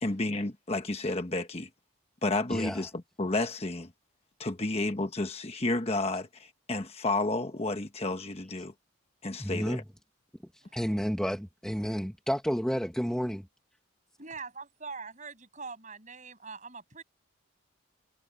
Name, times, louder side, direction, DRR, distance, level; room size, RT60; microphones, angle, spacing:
voice 1, 0.0-1.7 2.2-3.9 4.4-8.7 9.2-9.8, left 2 dB, 30° left, 1.2 m, -31 dB
voice 2, 2.5-2.8 9.4-9.8 10.7-13.4, equal, 5° left, 1.5 m, -31 dB
voice 3, 14.2-17.0, right 4 dB, 35° right, 8.0 m, -43 dB
head